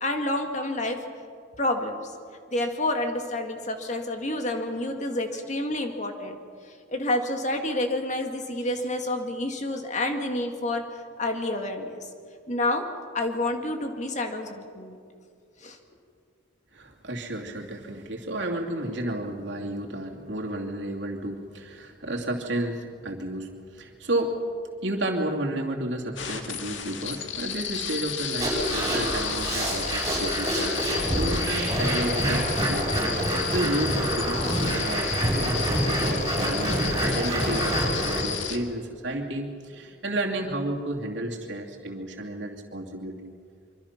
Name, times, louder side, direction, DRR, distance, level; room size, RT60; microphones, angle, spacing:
voice 1, 0.0-1.0 1.6-2.1 2.5-6.4 6.9-10.8 11.2-12.0 12.5-12.8 13.1-15.0 15.6-15.8, left 1 dB, 40° left, 4 dB, 2.2 m, -28 dB
voice 2, 16.7-24.4 24.8-32.9 33.2-35.1 35.4-43.3, right 1 dB, 75° right, 0 dB, 2.7 m, -32 dB
sound 1, 26.2-38.6, left 8 dB, 85° left, 2.0 m, -32 dB
sound 2, 28.4-38.2, right 1 dB, 20° right, 7.3 m, -26 dB
25.0 x 25.0 x 6.0 m, 2.3 s
head